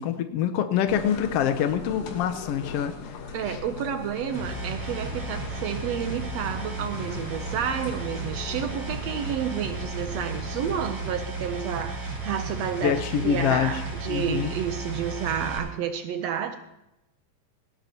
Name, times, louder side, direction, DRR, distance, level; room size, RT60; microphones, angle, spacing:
voice 1, 0.0-3.2 3.5-3.6 12.8-13.8 14.1-14.5, left 9 dB, 85° left, 8 dB, 1.3 m, -25 dB
sound 1, 0.9-10.9, left 5 dB, 60° left, 2.3 m, -40 dB
voice 2, 3.3-16.5, right 8 dB, 75° right, 8 dB, 1.7 m, -30 dB
sound 2, 4.3-15.6, right 3 dB, 30° right, 7.0 m, -34 dB
18.5 x 17.5 x 2.9 m, 0.91 s
omnidirectional pair, 3.7 m